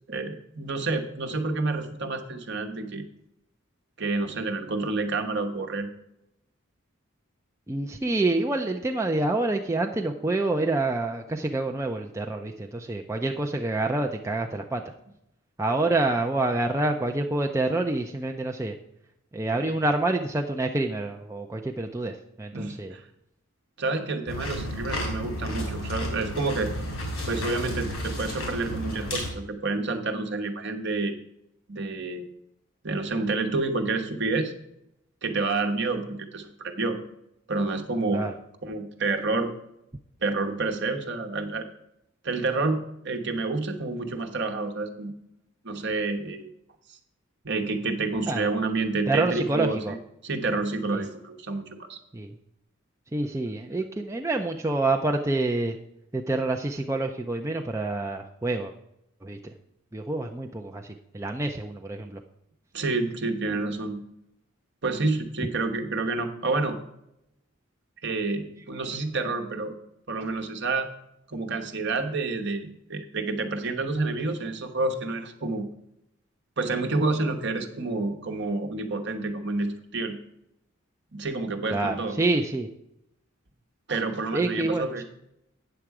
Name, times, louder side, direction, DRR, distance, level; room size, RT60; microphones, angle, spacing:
voice 1, 0.1-3.1 4.0-5.9 22.5-23.0 23.8-26.7 27.3-31.2 31.7-32.3 32.8-34.5 35.2-37.0 37.5-38.3 38.6-39.5 40.2-41.7 42.2-45.1 45.6-46.5 47.4-50.0 50.2-52.0 62.7-64.0 64.8-66.8 68.0-69.8 70.1-70.9 71.3-75.7 76.6-80.1 81.1-82.2 83.9-85.0, right 3 dB, 55° right, 5 dB, 1.1 m, -29 dB
voice 2, 7.7-14.8 15.6-18.8 19.3-22.9 38.1-38.3 48.3-48.5 49.1-49.9 50.9-51.0 52.1-52.4 53.1-55.8 56.1-58.7 59.2-59.5 59.9-62.2 81.7-82.7 84.3-85.0, right 2 dB, 15° right, 3 dB, 0.4 m, -27 dB
sound 1, 24.3-29.3, left 1 dB, 80° left, 3.2 m, -32 dB
8.8 x 6.9 x 4.8 m, 0.81 s
head